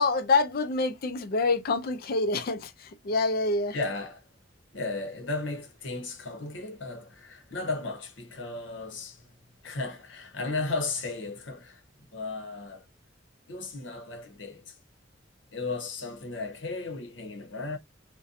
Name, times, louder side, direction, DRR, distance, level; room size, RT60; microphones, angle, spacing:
voice 1, 0.0-3.8, left 3 dB, 55° left, 0.4 m, -26 dB
voice 2, 3.7-4.2 4.7-9.3 9.6-11.8 12.1-12.8 13.5-14.7 15.5-17.8, left 3 dB, 85° left, 0.9 m, -35 dB
2.6 x 2.1 x 2.4 m
head